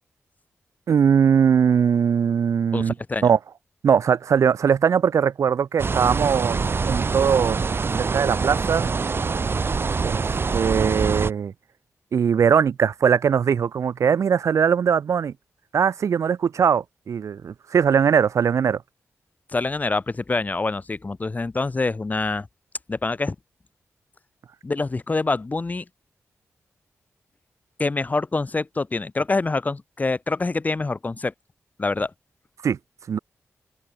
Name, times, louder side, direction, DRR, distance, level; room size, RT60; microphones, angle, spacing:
voice 1, 0.9-2.9 3.2-3.4 3.8-7.6 8.0-8.9 10.0-11.5 12.1-15.3 15.7-18.8 32.6-32.8 33.1-33.2, right 7 dB, 80° right, 3.2 m, -20 dB
voice 2, 2.7-3.3 19.5-22.5 22.9-23.3 24.6-25.8 27.8-31.3 31.8-32.1, left 3 dB, 30° left, 1.3 m, -25 dB
sound 1, 5.8-11.3, right 4 dB, 50° right, 2.1 m, -24 dB
open air
wide cardioid pair, 85°, 5 cm